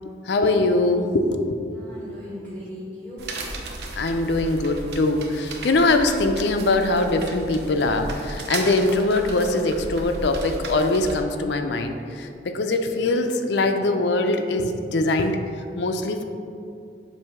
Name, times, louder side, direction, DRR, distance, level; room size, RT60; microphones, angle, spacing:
voice 1, 0.2-1.9 3.9-15.4 15.8-16.2, left 2 dB, 70° left, 6 dB, 0.5 m, -22 dB
voice 2, 1.7-3.7, equal, 30° right, -8 dB, 1.0 m, -39 dB
Branch cracking shuffle, 3.2-11.2, right 2 dB, 60° right, 0.7 m, -35 dB
7.7 x 2.7 x 5.7 m, 2.5 s
head